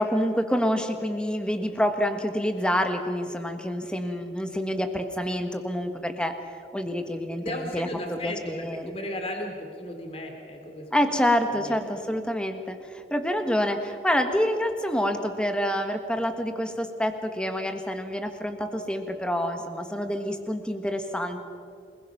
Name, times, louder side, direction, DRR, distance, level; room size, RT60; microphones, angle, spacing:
voice 1, 0.0-6.3 6.7-8.9 10.9-21.4, equal, 5° left, 6 dB, 1.5 m, -27 dB
voice 2, 7.4-10.9 11.5-12.0, left 1 dB, 35° left, 3 dB, 2.7 m, -36 dB
27.0 x 20.5 x 5.9 m, 2.6 s
head